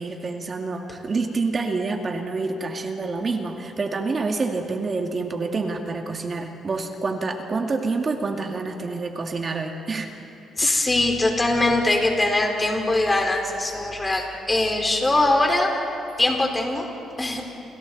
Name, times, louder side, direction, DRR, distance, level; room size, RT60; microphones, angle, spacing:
voice 1, 0.0-10.1 10.6-10.9, right 3 dB, 40° right, 3 dB, 2.3 m, -27 dB
voice 2, 10.6-15.7 16.2-16.9 17.2-17.4, left 2 dB, 20° left, 1 dB, 4.5 m, -22 dB
30.0 x 27.5 x 4.2 m, 2.9 s
cardioid pair, 90°, 0 cm